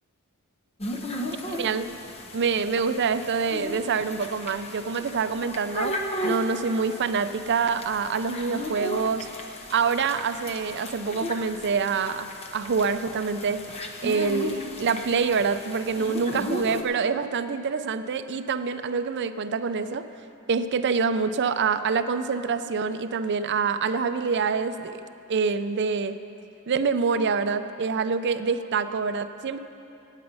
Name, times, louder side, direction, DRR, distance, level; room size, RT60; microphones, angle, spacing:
sound 1, 0.8-16.8, left 1 dB, 30° left, 0.9 m, -35 dB
voice 1, 1.5-1.9 2.3-6.0 6.2-9.3 9.7-13.6 14.0-20.1 20.5-25.0 25.3-26.2 26.7-29.6, right 5 dB, 55° right, 11 dB, 0.5 m, -26 dB
15.5 x 9.0 x 5.5 m, 2.8 s
head